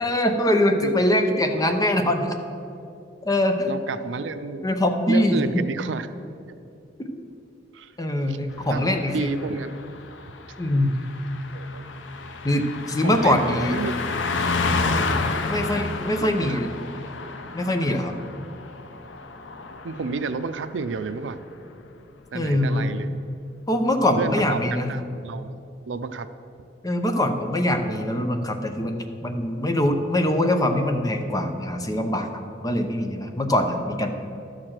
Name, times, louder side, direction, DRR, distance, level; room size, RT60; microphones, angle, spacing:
voice 1, 0.0-2.3 3.2-3.7 4.6-5.4 7.0-7.2 8.0-9.3 10.6-11.0 12.4-13.7 15.5-16.7 17.5-18.2 22.3-22.9 23.7-24.9 26.8-32.3 32.6-34.1, left 1 dB, 20° left, 5 dB, 0.7 m, -23 dB
voice 2, 3.7-4.7 5.1-6.1 7.7-7.9 8.2-8.4 8.7-10.1 11.5-11.8 13.0-13.9 16.2-16.6 19.8-21.4 22.3-23.1 24.2-24.6 24.9-25.6 25.9-26.3, right 4 dB, 85° right, 11 dB, 0.5 m, -31 dB
Car passing by, 8.6-20.5 20.8-21.1, left 3 dB, 90° left, 0.7 m, -30 dB
12.0 x 4.9 x 7.3 m, 2.6 s
head